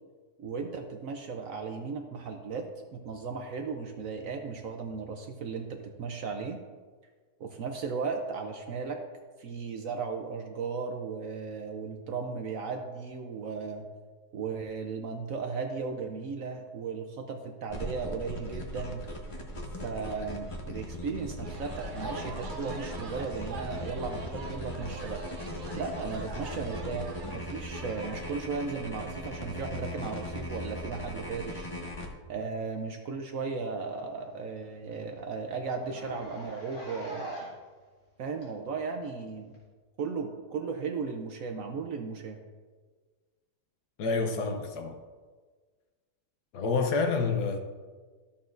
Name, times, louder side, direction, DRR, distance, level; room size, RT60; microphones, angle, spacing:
voice 1, 0.4-6.6 7.4-9.0 9.4-13.9 14.3-19.0 19.8-25.2 25.7-31.7 32.3-37.4 38.2-39.5 40.0-42.4, right 5 dB, 65° right, 0.9 m, -36 dB
sound 1, 17.7-32.1, equal, 25° left, 0.7 m, -39 dB
sound 2, 21.4-28.3, right 3 dB, 90° right, 0.4 m, -44 dB
Zipper (clothing), 33.2-33.3 33.6-33.7 34.1-34.2 34.6-34.7 34.9-35.1 35.7-37.7 38.4-38.5 39.5-39.6, right 1 dB, 55° left, 2.6 m, -43 dB
voice 2, 44.0-45.0 46.5-47.6, left 4 dB, 70° left, 1.3 m, -28 dB
12.5 x 7.0 x 2.6 m
omnidirectional pair, 1.9 m